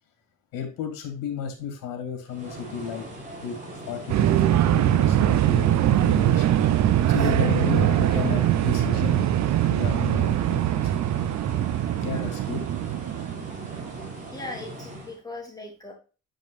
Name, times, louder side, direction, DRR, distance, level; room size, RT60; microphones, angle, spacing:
voice 1, 0.5-3.1 3.4-3.6 3.9-6.6 7.1-9.4 9.6-11.0 12.0-12.6 13.3-13.5, left 8 dB, 85° left, 5 dB, 2.5 m, -33 dB
sound 1, 2.3-15.2, right 1 dB, 25° right, 4.2 m, -41 dB
sound 2, 4.1-14.1, right 12 dB, 55° right, 0.7 m, -22 dB
voice 2, 6.8-8.4 11.9-12.3 14.3-15.9, left 2 dB, 10° left, -1 dB, 3.2 m, -40 dB
9.1 x 5.3 x 2.4 m, 0.34 s
cardioid pair, 105°, 33 cm